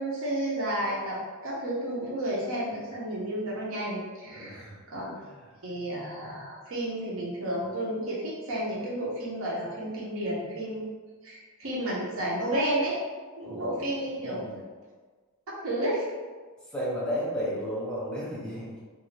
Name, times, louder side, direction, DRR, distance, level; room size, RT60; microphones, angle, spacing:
voice 1, 0.0-5.1 5.6-10.9 11.2-13.0 13.4-14.4 15.6-16.0, right 1 dB, 65° right, -5 dB, 0.8 m, -31 dB
voice 2, 4.3-4.8 5.2-5.5 6.2-6.4 13.4-13.8 14.1-14.6 16.7-18.8, equal, 5° left, -7 dB, 0.7 m, -34 dB
2.6 x 2.4 x 3.2 m, 1.4 s
head